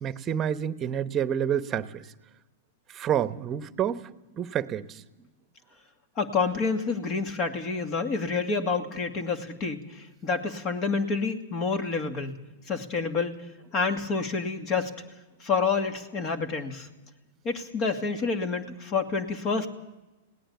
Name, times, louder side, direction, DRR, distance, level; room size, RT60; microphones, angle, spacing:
voice 1, 0.0-2.1 2.9-5.0, right 9 dB, 30° right, 12 dB, 1.0 m, -29 dB
voice 2, 6.2-12.4 12.7-13.3 13.7-14.9 15.4-16.9 17.4-19.7, left 4 dB, 40° left, 7 dB, 2.4 m, -28 dB
20.5 x 18.0 x 7.2 m, 1.0 s
hypercardioid pair, 105°, 0 cm